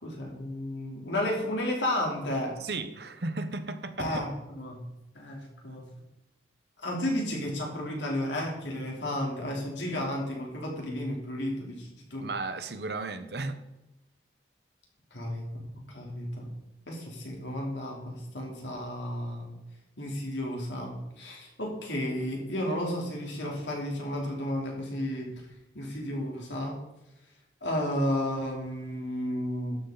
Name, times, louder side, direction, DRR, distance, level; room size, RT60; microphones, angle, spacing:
voice 1, 0.0-2.5 4.0-4.3 4.6-4.8 5.1-5.8 6.8-12.3 15.1-15.5 15.9-16.5 16.9-19.5 20.0-25.3 25.7-26.7 27.6-29.8, left 1 dB, 90° left, -1 dB, 3.3 m, -32 dB
voice 2, 2.6-4.3 12.2-13.6, right 3 dB, 65° right, 10 dB, 0.9 m, -35 dB
12.0 x 7.9 x 4.0 m, 0.96 s
head